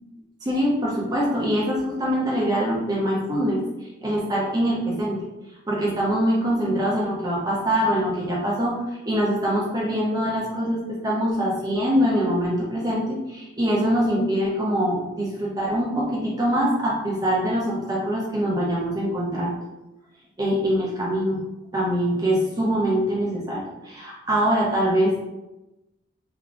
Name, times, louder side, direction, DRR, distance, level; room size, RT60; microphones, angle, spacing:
voice 1, 0.4-3.6 4.0-5.2 5.7-19.5 20.4-21.4 21.7-25.1, equal, 20° right, -5 dB, 0.8 m, -23 dB
3.5 x 2.8 x 2.5 m, 0.99 s
head